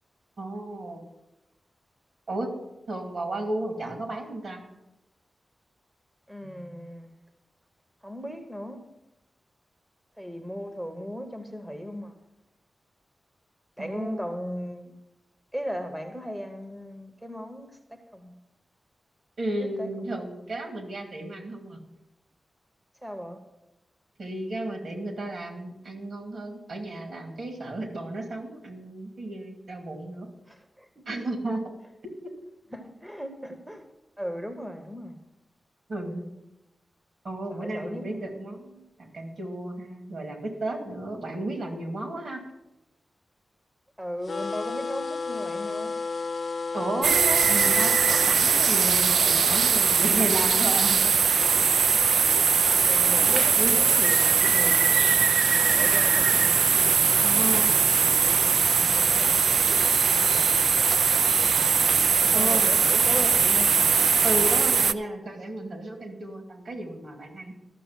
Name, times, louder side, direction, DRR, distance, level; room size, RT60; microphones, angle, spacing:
voice 1, 0.4-1.0 2.3-2.5 2.9-4.6 13.8-14.2 19.4-21.8 24.2-30.3 31.1-31.6 32.0-32.1 35.9-36.2 37.2-42.4 46.7-51.4 53.6-53.8 56.0-56.4 57.2-57.8 58.8-59.3 62.3-63.0 64.2-67.5, right 1 dB, 60° right, 3 dB, 2.4 m, -33 dB
voice 2, 6.3-7.1 8.0-8.8 10.2-12.1 13.8-14.9 15.5-18.4 19.6-19.9 23.0-23.4 30.5-31.1 32.7-33.9 34.2-35.2 37.5-38.1 44.0-45.9 52.9-56.5 57.3-57.8 60.0-60.3 61.4-61.7 62.2-63.8, equal, 10° right, 6 dB, 0.8 m, -37 dB
sound 1, 44.2-48.4, left 4 dB, 45° left, 0.5 m, -32 dB
sound 2, 47.0-64.9, right 6 dB, 85° right, 0.3 m, -21 dB
12.5 x 6.7 x 7.3 m, 0.95 s
wide cardioid pair, 175°, 0 cm